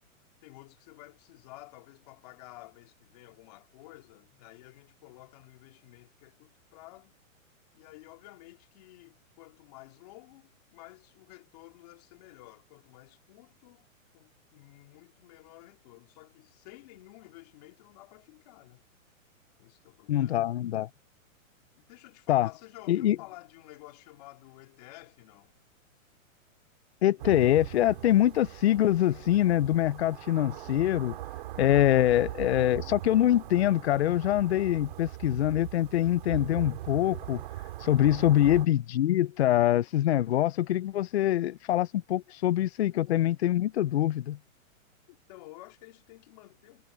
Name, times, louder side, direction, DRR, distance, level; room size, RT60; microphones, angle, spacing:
voice 1, 0.4-7.1 7.7-13.9 14.1-18.8 19.6-20.5 21.8-25.5 32.0-32.3 41.2-41.3 42.3-42.4 42.8-42.9 45.1-46.8, left 19 dB, 30° left, 2.9 m, -52 dB
voice 2, 20.1-20.9 22.3-22.5 22.9-23.2 27.0-31.2 31.6-37.4 37.8-44.4, left 13 dB, 55° left, 0.5 m, -24 dB
sound 1, 27.2-38.7, right 15 dB, 40° right, 2.5 m, -40 dB
hypercardioid pair, 180°, 41 cm